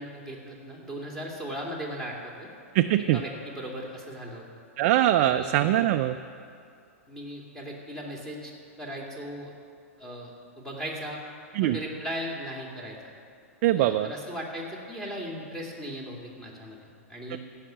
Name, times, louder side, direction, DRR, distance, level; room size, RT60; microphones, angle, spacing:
voice 1, 0.0-2.5 3.1-4.4 5.2-5.5 7.1-8.5 8.8-9.5 10.0-10.3 10.6-11.2 11.6-13.0 13.8-17.4, equal, 5° left, -2 dB, 2.5 m, -37 dB
voice 2, 2.7-3.2 4.8-6.2 11.5-11.8 13.6-14.1 17.3-17.4, right 13 dB, 45° right, 7 dB, 0.4 m, -22 dB
15.0 x 5.8 x 7.6 m, 2.4 s
hypercardioid pair, 115°, 8 cm